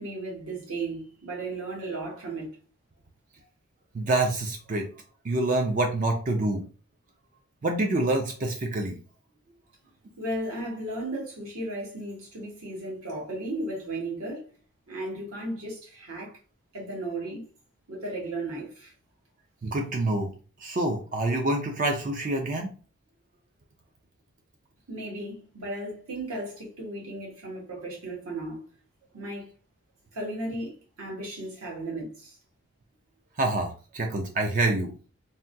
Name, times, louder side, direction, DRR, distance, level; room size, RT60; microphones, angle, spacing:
voice 1, 0.0-2.5 10.2-14.4 14.9-16.4 16.7-17.4 17.9-18.9 24.9-28.6 29.1-29.5 30.1-32.4, right 2 dB, 75° right, 1.4 m, -35 dB
voice 2, 3.9-4.9 5.2-6.6 7.6-8.9 19.6-20.3 20.6-22.7 33.4-34.9, right 2 dB, 35° right, 0.3 m, -26 dB
3.4 x 2.2 x 2.6 m
head